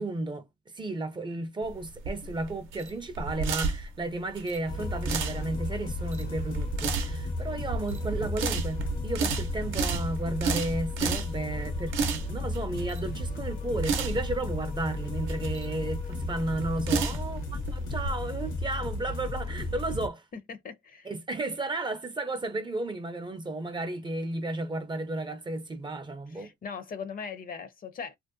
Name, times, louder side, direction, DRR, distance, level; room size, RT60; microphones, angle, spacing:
voice 1, 0.0-20.2 21.0-26.5, right 2 dB, 25° right, 0.4 m, -33 dB
sound 1, 1.6-18.1, right 5 dB, 80° right, 0.6 m, -33 dB
sound 2, 4.7-20.1, left 2 dB, 85° left, 0.9 m, -34 dB
voice 2, 20.5-21.1 26.3-28.2, left 6 dB, 45° left, 0.5 m, -39 dB
2.5 x 2.1 x 2.5 m
cardioid pair, 90°, 20 cm